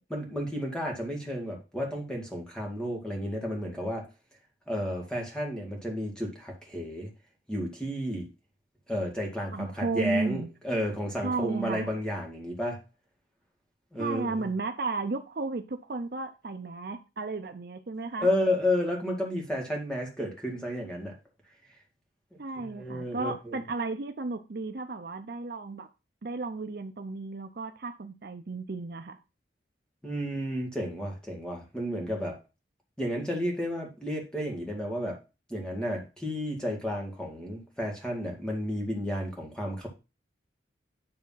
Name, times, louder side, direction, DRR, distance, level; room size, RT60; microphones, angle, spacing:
voice 1, 0.1-4.1 4.7-7.1 7.5-8.3 8.9-12.8 13.9-14.5 18.2-21.1 22.3-23.6 30.0-32.4 33.0-35.2 35.5-39.9, equal, 5° left, -1 dB, 2.0 m, -32 dB
voice 2, 9.5-10.5 11.2-11.9 14.0-18.3 22.4-25.9 26.2-29.2, right 3 dB, 55° right, 7 dB, 0.6 m, -34 dB
10.0 x 3.5 x 5.6 m, 0.29 s
head